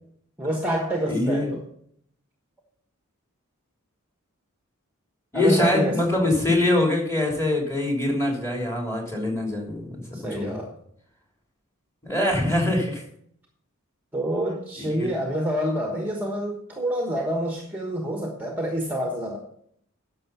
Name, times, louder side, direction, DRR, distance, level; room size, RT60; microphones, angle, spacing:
voice 1, 0.4-1.6 5.3-6.0 10.1-10.7 14.1-19.4, equal, 10° right, 1 dB, 1.2 m, -27 dB
voice 2, 1.1-1.5 5.3-10.6 12.0-13.0 14.8-15.1, left 1 dB, 15° left, 0 dB, 3.0 m, -24 dB
10.5 x 6.8 x 5.6 m, 0.68 s
head